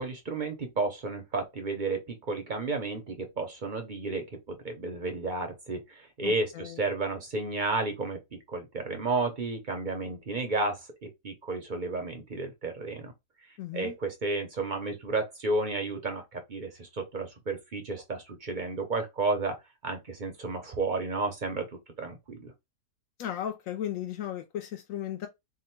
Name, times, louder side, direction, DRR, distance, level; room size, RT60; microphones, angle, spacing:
voice 1, 0.0-13.1 13.7-19.6 19.8-21.7 22.0-22.5, right 3 dB, 50° right, 0.6 m, -32 dB
voice 2, 6.2-6.8 13.6-13.9 23.2-25.3, left 10 dB, 70° left, 0.8 m, -35 dB
3.7 x 2.2 x 4.4 m
omnidirectional pair, 1.8 m